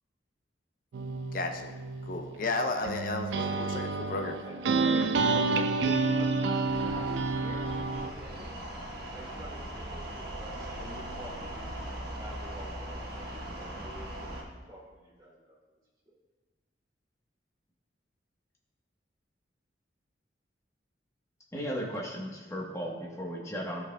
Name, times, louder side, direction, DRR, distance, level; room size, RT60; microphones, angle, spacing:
sound 1, 0.9-8.1, right 3 dB, 80° right, 0.4 m, -29 dB
voice 1, 1.3-1.7 2.1-4.4, left 2 dB, 50° left, 5 dB, 0.7 m, -33 dB
voice 2, 4.4-8.6 9.1-15.6 16.1-16.2, right 1 dB, 20° right, -5 dB, 1.9 m, -46 dB
sound 2, 6.6-14.4, right 1 dB, 60° right, 1.2 m, -40 dB
voice 3, 21.5-23.8, equal, 15° left, -2 dB, 1.2 m, -35 dB
13.0 x 4.9 x 2.3 m, 1.3 s
head